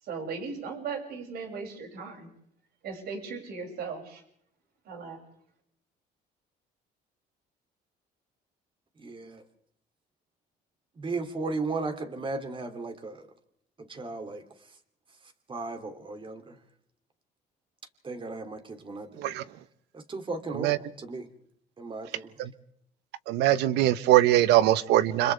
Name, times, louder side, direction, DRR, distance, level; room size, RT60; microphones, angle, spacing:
voice 1, 0.0-2.3 2.8-4.2 4.8-5.2, right 5 dB, 70° right, 6.7 m, -37 dB
voice 2, 9.0-9.4 11.0-13.3 13.8-14.4 15.5-16.6 18.0-19.2 19.9-21.3 21.8-22.3, right 3 dB, 30° right, 2.9 m, -35 dB
voice 3, 23.3-25.3, right 14 dB, 90° right, 1.1 m, -22 dB
29.5 x 26.5 x 3.5 m
cardioid pair, 110°, 17 cm